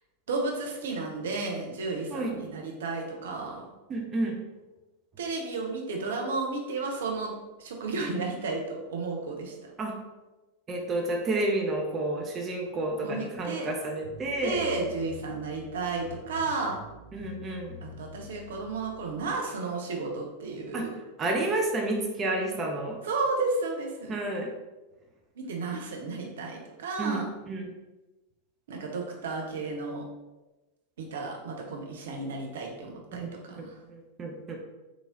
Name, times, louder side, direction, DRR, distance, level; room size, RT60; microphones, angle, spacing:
voice 1, 0.3-3.7 5.2-7.3 7.6-9.7 13.0-13.7 14.4-16.8 17.8-20.9 23.0-24.1 25.4-27.3 28.7-30.1 31.0-33.8, right 3 dB, 60° right, 1 dB, 0.7 m, -33 dB
voice 2, 3.9-4.4 9.8-9.9 10.7-14.6 17.1-17.8 20.7-20.8 21.2-23.0 24.1-24.5 27.0-27.7 33.1-34.6, right 2 dB, 25° right, 1 dB, 0.6 m, -30 dB
sound 1, 14.0-19.3, left 3 dB, 85° left, 0.6 m, -47 dB
3.7 x 3.1 x 2.6 m, 1.1 s
figure-of-eight pair, 90°, 0 cm